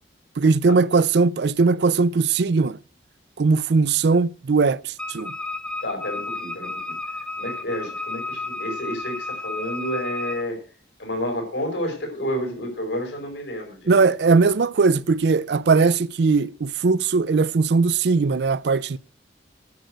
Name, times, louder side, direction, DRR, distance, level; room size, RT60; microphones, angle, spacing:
voice 1, 0.4-2.8 3.4-5.3 13.9-19.0, right 4 dB, 70° right, 0.4 m, -19 dB
Wind instrument woodwind instrument, 5.0-10.5, left 2 dB, 5° left, 0.5 m, -32 dB
voice 2, 5.8-6.9 7.4-10.6 11.0-14.1, equal, 85° left, 5.0 m, -30 dB
11.0 x 6.3 x 7.9 m
head